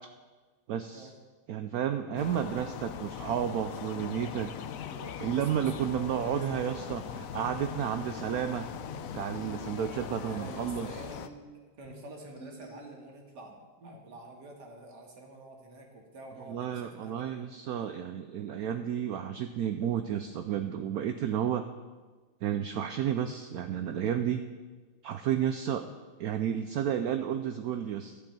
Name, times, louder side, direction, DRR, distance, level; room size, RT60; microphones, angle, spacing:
voice 1, 0.7-1.1 1.5-4.5 5.2-8.7 9.1-10.9 16.5-21.6 22.4-24.4 25.0-25.9 26.2-28.2, right 9 dB, 75° right, 8 dB, 0.8 m, -32 dB
sound 1, 2.2-11.3, left 9 dB, 80° left, 0.7 m, -40 dB
voice 2, 4.9-6.8 10.2-11.2 11.8-18.0, right 2 dB, 60° right, 1 dB, 2.2 m, -48 dB
sound 2, 7.4-13.3, left 1 dB, 65° left, 3.2 m, -51 dB
11.5 x 5.3 x 8.8 m, 1.4 s
omnidirectional pair, 2.1 m